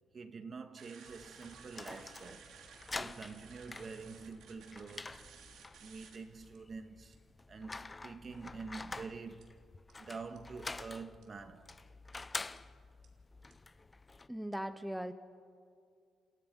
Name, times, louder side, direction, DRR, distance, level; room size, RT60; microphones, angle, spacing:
voice 1, 0.1-2.5 3.0-5.3 5.8-9.6 10.0-11.8, right 4 dB, 40° right, 1.8 m, -47 dB
sound 1, 0.8-6.2 6.5-6.6 7.1-7.3 9.4-9.5 9.9-10.0 10.4-10.5 10.8-10.9 11.2-11.3 11.7-11.8 12.1-12.2 12.6-12.7 13.0-13.1 13.5-13.6, right 6 dB, 80° right, 3.5 m, -57 dB
sound 2, 1.1-14.3, left 3 dB, 20° left, 0.8 m, -48 dB
voice 2, 14.3-15.1, equal, 5° right, 1.0 m, -39 dB
30.0 x 28.5 x 5.6 m
cardioid pair, 90°, 0 cm